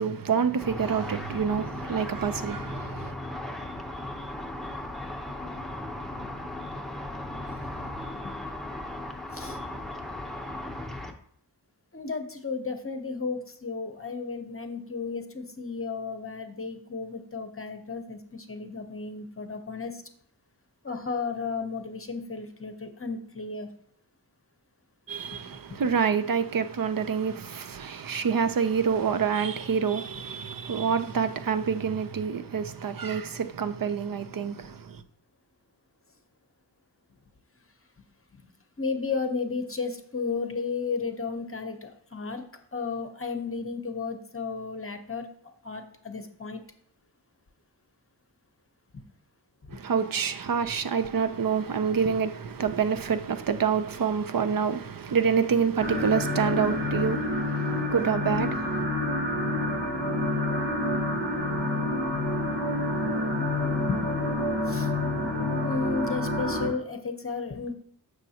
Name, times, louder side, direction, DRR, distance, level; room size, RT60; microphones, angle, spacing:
voice 1, 0.0-3.1 25.1-35.0 49.7-58.9, right 6 dB, 55° right, 0.6 m, -27 dB
Car / Traffic noise roadway noise / Engine, 0.6-11.1, left 1 dB, ahead, 0.8 m, -37 dB
voice 2, 11.9-20.0 20.8-23.7 29.8-30.0 30.4-30.5 38.8-42.4 42.7-46.6 48.9-49.0 63.9-64.0 64.7-64.9 65.6-67.7, left 4 dB, 30° left, 0.8 m, -33 dB
sound 1, 55.8-66.7, left 1 dB, 70° right, 1.6 m, -28 dB
7.3 x 6.3 x 2.8 m
wide cardioid pair, 90°, 42 cm